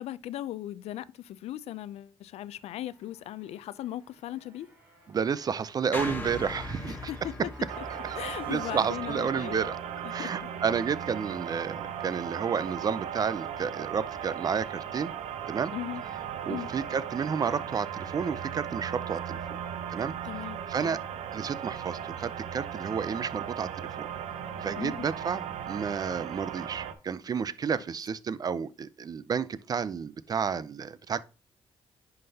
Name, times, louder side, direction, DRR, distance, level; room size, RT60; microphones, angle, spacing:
voice 1, 0.0-4.7 6.8-7.3 8.1-9.7 10.0-10.5 15.7-16.0 16.5-16.7 20.2-21.0 24.8-25.1, left 13 dB, 80° left, 0.4 m, -38 dB
Motorcycle, 2.5-14.6, right 2 dB, 15° right, 2.5 m, -54 dB
voice 2, 5.1-7.1 8.0-8.2 8.5-9.8 10.1-15.1 15.5-15.7 16.5-19.6 19.9-20.1 20.7-21.0 21.3-24.1 24.6-31.2, right 6 dB, 35° right, 0.4 m, -31 dB
sound 1, 5.9-10.2, left 2 dB, 20° left, 1.0 m, -41 dB
sound 2, 7.7-26.9, right 9 dB, 85° right, 0.8 m, -37 dB
10.5 x 3.9 x 2.8 m
cardioid pair, 110°, 11 cm